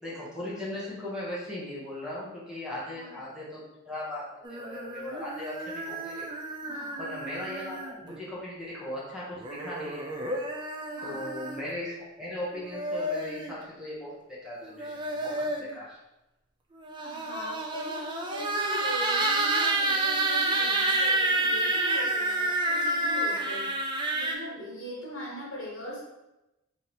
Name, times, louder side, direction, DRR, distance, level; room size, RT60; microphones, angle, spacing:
voice 1, 0.0-6.3 7.0-10.4 11.0-16.0, left 1 dB, 5° right, -8 dB, 0.9 m, -38 dB
voice 2, 2.9-3.2 6.6-7.0 11.0-11.3 17.0-23.7 24.1-26.0, equal, 65° left, -5 dB, 1.4 m, -40 dB
sound 1, 4.4-8.2 9.4-11.7 12.5-13.5 14.6-15.8 16.8-24.3, right 2 dB, 20° right, 0.3 m, -29 dB
3.1 x 2.7 x 4.3 m, 0.96 s
head